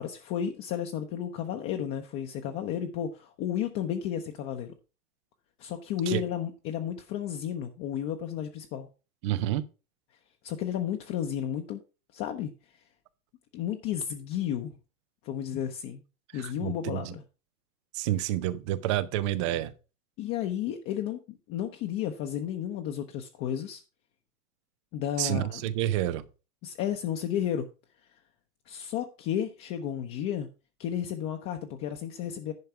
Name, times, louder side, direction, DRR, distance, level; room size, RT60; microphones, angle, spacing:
voice 1, 0.0-4.7 5.6-8.9 10.4-11.8 12.1-12.5 13.5-14.7 15.2-16.0 16.3-17.2 20.2-23.8 24.9-25.6 26.6-27.7 28.7-30.5 30.8-32.5, left 9 dB, 30° left, 0.8 m, -32 dB
voice 2, 9.2-9.7 16.3-17.1 17.9-19.7 25.2-26.2, right 13 dB, 25° right, 0.4 m, -29 dB
10.5 x 4.6 x 5.7 m
hypercardioid pair, 125°, 45 cm